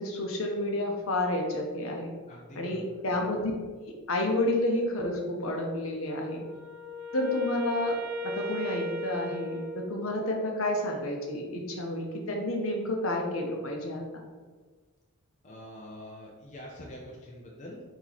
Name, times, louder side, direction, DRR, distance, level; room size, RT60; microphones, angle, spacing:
voice 1, 0.0-2.1 2.6-3.5 3.8-6.4 7.1-8.0 8.2-14.0, left 1 dB, 60° left, 1 dB, 0.8 m, -30 dB
voice 2, 2.3-2.9 15.4-17.8, left 1 dB, 35° left, -2 dB, 0.5 m, -45 dB
Wind instrument woodwind instrument, 6.0-10.4, right 1 dB, 70° right, 0.6 m, -37 dB
4.3 x 2.9 x 4.0 m, 1.4 s
head